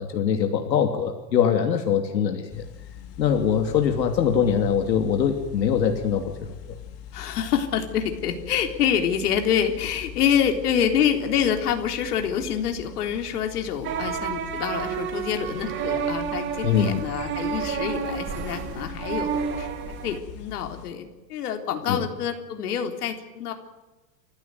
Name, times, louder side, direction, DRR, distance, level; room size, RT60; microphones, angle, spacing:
voice 1, 0.0-2.6 3.2-6.5 16.6-17.0 21.9-22.1, left 8 dB, 85° left, 5 dB, 3.0 m, -23 dB
sound 1, 2.5-20.9, left 9 dB, 30° left, 2.6 m, -43 dB
voice 2, 7.1-19.7 20.0-23.5, left 8 dB, 65° left, 5 dB, 3.8 m, -26 dB
sound 2, 13.8-20.2, right 7 dB, 25° right, 2.0 m, -30 dB
28.5 x 15.5 x 9.5 m, 1.1 s
supercardioid pair, 160°, 50 cm